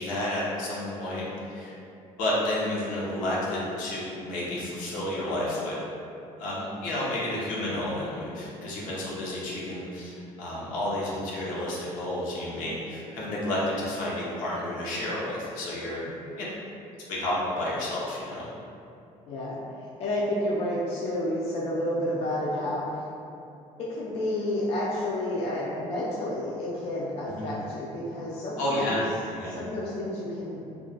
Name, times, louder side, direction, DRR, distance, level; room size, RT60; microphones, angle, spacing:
voice 1, 0.0-1.7 2.2-5.8 6.4-10.1 10.4-16.0 16.4-16.5 17.1-18.5 27.3-27.5 28.6-29.0 29.3-29.6, left 1 dB, 80° left, -6 dB, 0.8 m, -31 dB
voice 2, 19.3-19.6 20.0-22.8 23.9-29.0 29.5-30.6, left 1 dB, 45° left, -6 dB, 0.4 m, -30 dB
2.3 x 2.1 x 3.8 m, 2.6 s
cardioid pair, 155°, 13 cm